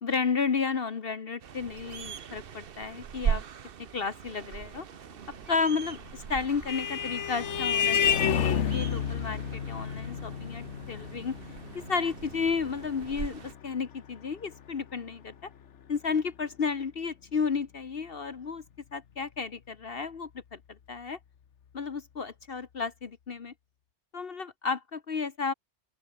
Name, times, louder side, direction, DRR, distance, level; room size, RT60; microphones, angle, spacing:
voice 1, 0.0-3.4 3.9-4.9 5.5-11.4 11.7-15.5 15.9-18.6 18.9-20.6 20.9-21.2 21.7-23.5 24.1-25.5, left 5 dB, 55° left, 1.3 m, -32 dB
sound 1, 1.4-13.5, right 8 dB, 55° right, 1.0 m, -39 dB
Vehicle horn car horn honking, 6.1-15.0, left 8 dB, 80° left, 1.4 m, -31 dB
open air
omnidirectional pair, 1.2 m